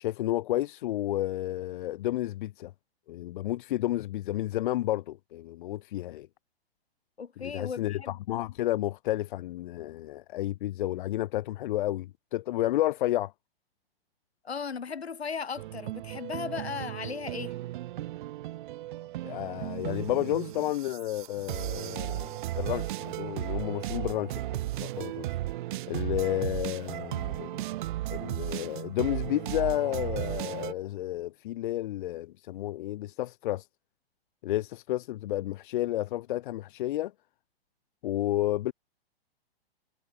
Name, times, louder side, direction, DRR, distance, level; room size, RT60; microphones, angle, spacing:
voice 1, 0.0-2.7 3.1-6.3 7.4-13.3 19.2-25.3 25.9-27.6 28.1-33.6 34.4-37.1 38.0-38.7, left 15 dB, 55° left, 3.1 m, -31 dB
voice 2, 7.2-8.2 14.4-17.5, left 6 dB, 85° left, 7.4 m, -36 dB
sound 1, 15.6-30.7, right 15 dB, 50° right, 2.1 m, -35 dB
hypercardioid pair, 130°, 31 cm